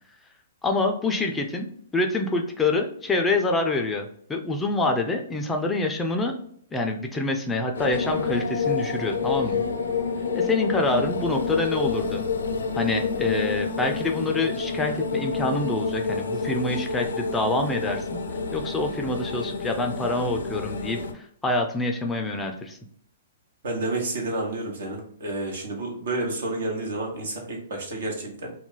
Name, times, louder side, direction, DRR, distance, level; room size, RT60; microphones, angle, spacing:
voice 1, 0.6-1.7 1.9-6.3 6.7-9.6 10.3-12.2 12.7-18.2 18.5-22.8, left 2 dB, 10° left, 3 dB, 0.4 m, -26 dB
sound 1, 7.7-21.1, left 5 dB, 80° left, 0.4 m, -28 dB
voice 2, 23.6-28.5, right 2 dB, 70° right, 0 dB, 1.0 m, -30 dB
2.3 x 2.2 x 3.8 m, 0.64 s
hypercardioid pair, 125°, 0 cm